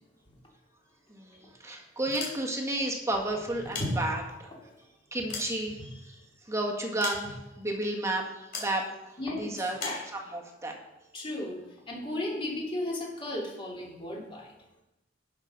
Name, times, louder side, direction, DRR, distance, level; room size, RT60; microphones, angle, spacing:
voice 1, 1.1-4.5 5.1-6.2 6.5-8.9 9.3-9.8 10.3-10.8, right 1 dB, 15° right, 0 dB, 1.6 m, -32 dB
sound 1, 2.0-2.8 3.5-4.5 5.0-6.2 7.0-7.6 8.5-8.8 9.8-10.1, left 4 dB, 55° left, 3.1 m, -39 dB
voice 2, 9.2-9.5 9.8-10.1 11.1-11.6 11.9-14.5, left 1 dB, 30° left, -2 dB, 2.8 m, -34 dB
11.5 x 6.1 x 5.5 m, 0.95 s
head